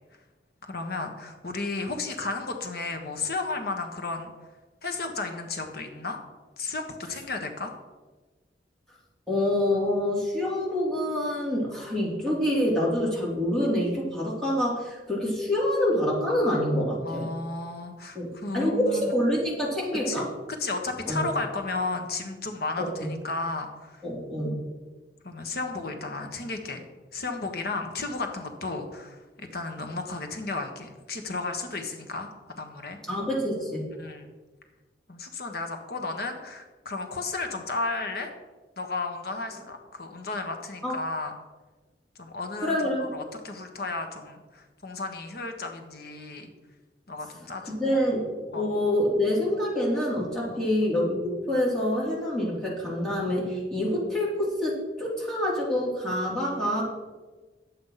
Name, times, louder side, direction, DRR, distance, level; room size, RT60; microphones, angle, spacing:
voice 1, 0.6-4.3 4.8-6.2 6.6-7.7 17.0-19.1 20.1-20.3 20.6-24.0 25.2-26.8 27.1-32.3 32.6-33.0 34.0-34.3 35.1-38.3 38.8-41.3 42.2-46.5 47.1-48.0 48.5-48.7 50.5-50.7, left 3 dB, 60° left, 5 dB, 1.4 m, -33 dB
voice 2, 9.3-17.2 18.1-18.3 18.5-20.3 21.1-21.2 22.8-23.1 24.0-24.6 33.1-33.9 40.8-41.0 42.6-43.1 47.6-56.8, left 1 dB, 5° left, -6 dB, 3.2 m, -26 dB
10.0 x 8.1 x 5.7 m, 1.3 s
head